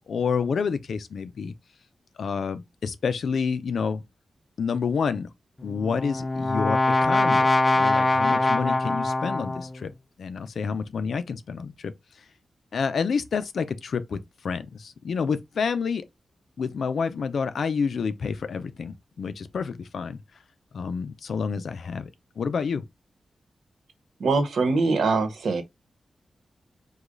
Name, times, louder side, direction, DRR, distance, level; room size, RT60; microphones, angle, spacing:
voice 1, 0.1-1.5 2.2-4.0 4.6-5.3 5.6-9.9 10.2-11.9 12.7-16.0 16.6-20.2 20.7-22.1 22.4-22.8, left 5 dB, 70° left, 0.6 m, -29 dB
Brass instrument, 5.6-9.8, left 2 dB, 20° left, 0.4 m, -23 dB
voice 2, 24.2-25.6, right 3 dB, 80° right, 1.1 m, -23 dB
5.0 x 2.4 x 3.9 m
wide cardioid pair, 150°, 0 cm